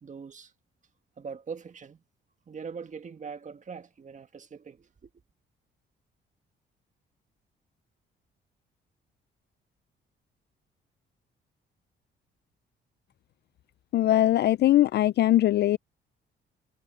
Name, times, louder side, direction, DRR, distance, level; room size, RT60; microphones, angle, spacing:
voice 1, 0.0-0.5 1.2-2.0 2.5-5.1, right 6 dB, 40° right, 1.7 m, -42 dB
voice 2, 13.9-15.8, left 13 dB, 60° left, 0.4 m, -21 dB
cardioid pair, 90°, 20 cm